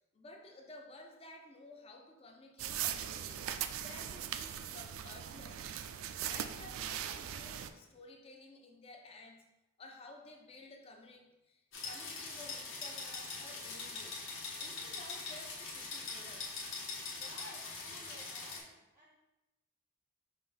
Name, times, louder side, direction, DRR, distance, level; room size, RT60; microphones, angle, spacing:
voice 1, 0.1-5.7 6.3-9.4 9.8-14.3 14.6-16.6, left 2 dB, 30° left, 2 dB, 0.5 m, -54 dB
sound 1, 2.6-7.7, right 10 dB, 80° right, 0.3 m, -40 dB
sound 2, 11.7-18.6, left 4 dB, 65° left, 1.1 m, -43 dB
voice 2, 17.2-19.1, equal, 15° right, -3 dB, 0.6 m, -55 dB
5.3 x 2.6 x 3.9 m, 1.0 s
head